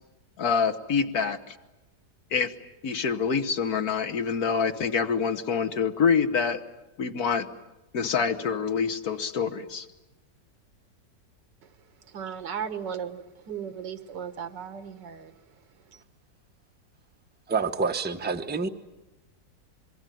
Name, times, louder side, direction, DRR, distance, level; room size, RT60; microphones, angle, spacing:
voice 1, 0.4-1.6 2.3-2.5 2.8-6.6 7.0-7.5 7.9-9.9, left 6 dB, 60° left, 1.6 m, -26 dB
voice 2, 12.1-15.3, right 7 dB, 80° right, 1.9 m, -36 dB
voice 3, 17.5-18.7, right 4 dB, 10° right, 0.7 m, -27 dB
26.0 x 22.5 x 9.2 m
omnidirectional pair, 1.9 m